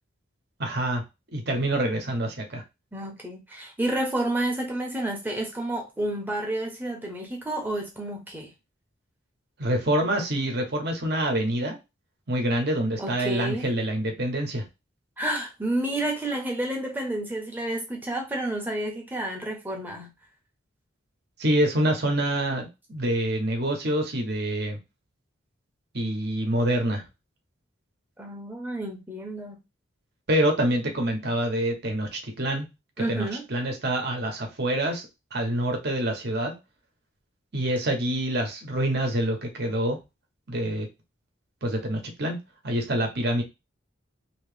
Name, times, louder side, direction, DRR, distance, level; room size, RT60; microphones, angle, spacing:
voice 1, 0.6-1.0 1.3-2.6 9.6-11.8 12.3-14.6 21.4-24.8 25.9-27.0 30.3-32.7 33.0-35.1 35.3-36.5 37.5-40.0 40.5-40.9 41.6-42.4 42.6-43.4, right 1 dB, 55° right, 1.0 m, -26 dB
voice 2, 2.9-8.5 13.0-13.7 15.2-20.1 28.2-29.6 33.0-33.4, right 1 dB, 10° right, 0.8 m, -30 dB
2.9 x 2.9 x 3.3 m
head